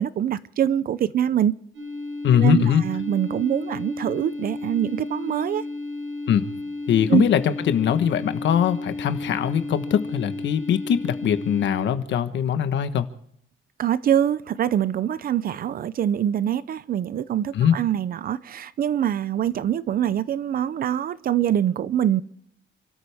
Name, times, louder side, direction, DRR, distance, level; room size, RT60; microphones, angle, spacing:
voice 1, 0.0-1.5 2.3-5.6 7.1-7.2 13.8-22.2, right 10 dB, 50° right, 0.5 m, -24 dB
sound 1, 1.7-11.8, left 2 dB, 90° right, 5.7 m, -33 dB
voice 2, 2.2-2.8 6.3-6.5 6.9-13.1 17.5-17.8, left 9 dB, 65° left, 1.2 m, -21 dB
29.5 x 13.5 x 3.5 m
cardioid pair, 180°, 20 cm